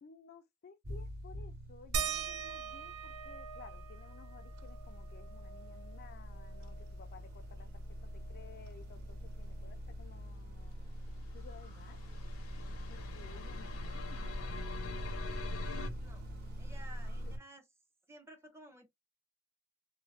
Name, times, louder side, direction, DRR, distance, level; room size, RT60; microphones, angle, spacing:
voice 1, 0.0-10.8 11.3-12.0 12.7-15.3 17.2-17.3, left 5 dB, 45° left, 0.4 m, -57 dB
sound 1, 0.8-17.4, equal, 45° right, 1.0 m, -45 dB
sound 2, 1.9-7.1 7.4-7.5 7.9-9.6 10.9-11.0 11.7-11.8, right 6 dB, 75° right, 0.4 m, -43 dB
sound 3, 11.1-15.9, left 2 dB, 70° left, 0.7 m, -43 dB
voice 2, 15.9-16.2 16.6-17.6 18.1-18.9, right 1 dB, 10° right, 0.5 m, -55 dB
2.5 x 2.0 x 3.1 m
head